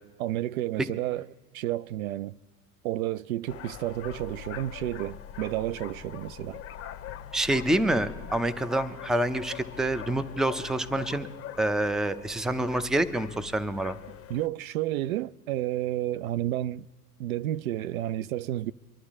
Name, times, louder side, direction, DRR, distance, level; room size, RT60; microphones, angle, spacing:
voice 1, 0.2-1.3 1.5-2.4 2.8-6.6 14.3-16.9 17.2-18.7, right 14 dB, 65° right, 0.5 m, -31 dB
sound 1, 3.5-14.5, left 10 dB, 30° left, 0.9 m, -42 dB
voice 2, 7.3-11.3 11.6-14.0, right 1 dB, ahead, 0.5 m, -27 dB
24.5 x 11.0 x 3.6 m
figure-of-eight pair, 80°, 46 cm